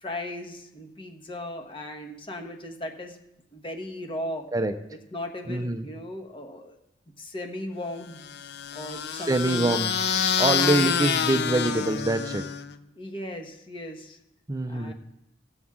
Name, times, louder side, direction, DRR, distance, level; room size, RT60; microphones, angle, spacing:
voice 1, 0.0-3.2 3.5-4.5 4.9-6.8 7.2-8.2 8.7-9.7 10.6-10.9 13.0-14.2 14.7-14.9, left 1 dB, 30° left, 3 dB, 1.3 m, -37 dB
voice 2, 5.5-5.9 9.1-9.9 10.4-12.4 14.5-14.9, right 2 dB, 20° right, 7 dB, 0.5 m, -25 dB
sound 1, 8.2-12.8, left 7 dB, 60° left, 0.5 m, -27 dB
16.5 x 7.1 x 3.7 m, 0.83 s
head